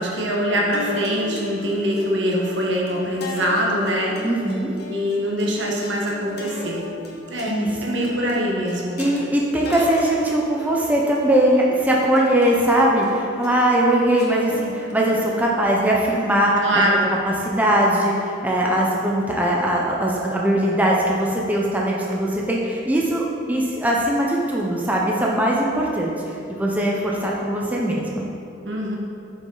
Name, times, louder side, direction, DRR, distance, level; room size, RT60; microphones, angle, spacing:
voice 1, 0.0-4.2 4.9-6.8 7.3-9.0 16.6-17.1 28.6-29.0, equal, 70° right, -2 dB, 1.3 m, -23 dB
sound 1, 0.7-17.2, left 2 dB, 55° left, 1.3 m, -37 dB
voice 2, 4.2-4.7 7.4-7.8 9.0-16.8 17.2-28.2, right 1 dB, 10° right, -3 dB, 0.6 m, -20 dB
8.4 x 6.1 x 3.9 m, 2.6 s
head